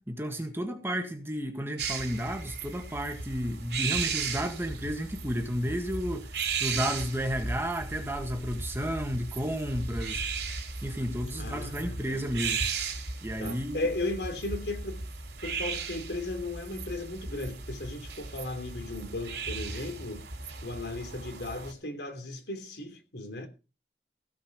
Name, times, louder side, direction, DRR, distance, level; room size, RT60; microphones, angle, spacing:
voice 1, 0.0-10.2 10.8-12.6 13.2-13.9, equal, 15° right, 1.6 m, -32 dB
sound 1, 1.8-21.7, right 4 dB, 70° right, 3.2 m, -36 dB
voice 2, 11.3-12.2 13.4-15.0 15.4-20.3 20.6-23.5, left 2 dB, 75° left, 3.1 m, -36 dB
16.5 x 5.6 x 6.5 m
head